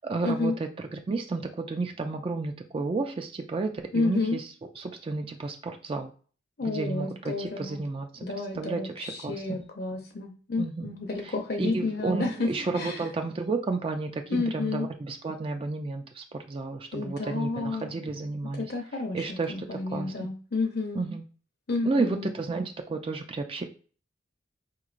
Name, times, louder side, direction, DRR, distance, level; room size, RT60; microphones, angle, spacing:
voice 1, 0.0-6.1 6.6-9.6 10.6-11.0 11.2-11.3 11.6-18.7 19.1-20.3 20.9-21.2 21.8-23.6, right 3 dB, 30° right, 5 dB, 0.3 m, -32 dB
voice 2, 3.9-4.4 6.6-7.8 8.2-12.5 12.7-13.1 14.3-14.9 16.9-17.9 18.6-21.0 21.7-22.3, left 3 dB, 55° left, 2 dB, 0.6 m, -31 dB
4.5 x 3.0 x 2.4 m, 0.40 s
head